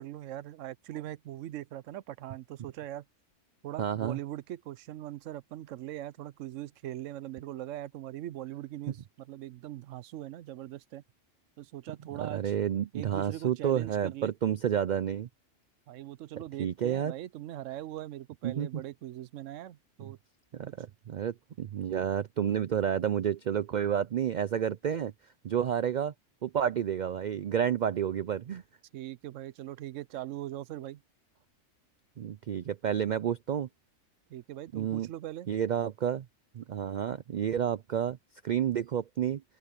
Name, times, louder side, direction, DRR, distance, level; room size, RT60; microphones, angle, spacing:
voice 1, 0.0-3.0 3.6-11.0 11.6-12.5 12.9-14.3 15.9-20.2 28.9-31.0 34.3-35.5, right 14 dB, 85° right, 0.9 m, -41 dB
voice 2, 3.8-4.2 12.1-15.3 16.6-17.1 18.4-18.8 20.0-20.1 20.5-25.1 25.4-26.1 26.4-28.6 32.2-33.7 34.7-35.1 35.5-36.3 36.5-38.2 38.4-39.4, right 9 dB, 65° right, 0.4 m, -30 dB
open air
omnidirectional pair, 1.3 m